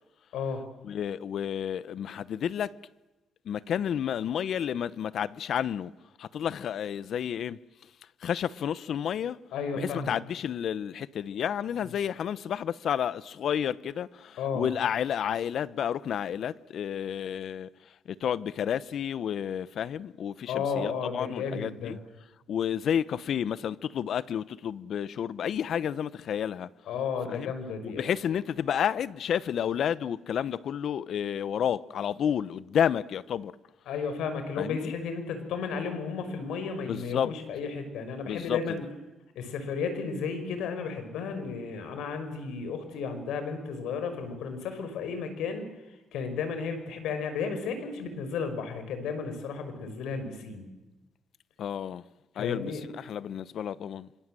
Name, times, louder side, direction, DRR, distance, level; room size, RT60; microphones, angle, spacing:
voice 1, 0.8-2.7 3.4-5.9 6.2-7.6 8.2-9.4 9.7-17.7 18.1-22.0 22.5-26.7 27.3-27.5 27.8-33.5 34.6-34.9 36.9-37.3 38.2-38.9 51.6-52.0 52.4-54.1, left 9 dB, 65° left, 0.9 m, -31 dB
voice 2, 9.5-10.2 14.4-14.7 20.5-21.9 26.9-28.1 33.9-38.8 39.4-45.6 46.1-50.7 52.4-52.8, left 5 dB, 85° left, 5.6 m, -33 dB
26.5 x 25.5 x 7.7 m
cardioid pair, 90°, 0 cm